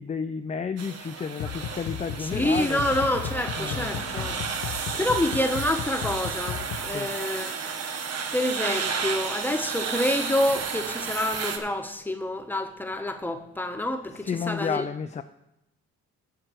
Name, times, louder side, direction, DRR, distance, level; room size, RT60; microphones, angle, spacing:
voice 1, 0.0-2.8 3.6-4.6 4.9-5.0 6.9-7.1 14.2-15.2, left 6 dB, 25° left, 9 dB, 0.4 m, -32 dB
sound 1, 0.8-11.6, right 5 dB, 55° right, 1.3 m, -32 dB
sound 2, 1.4-7.0, left 9 dB, 80° left, 0.6 m, -35 dB
voice 2, 2.2-4.4 4.7-7.6 8.3-14.8, left 1 dB, 5° left, 6 dB, 1.1 m, -28 dB
7.9 x 6.0 x 7.8 m, 0.83 s
cardioid pair, 90°, 30 cm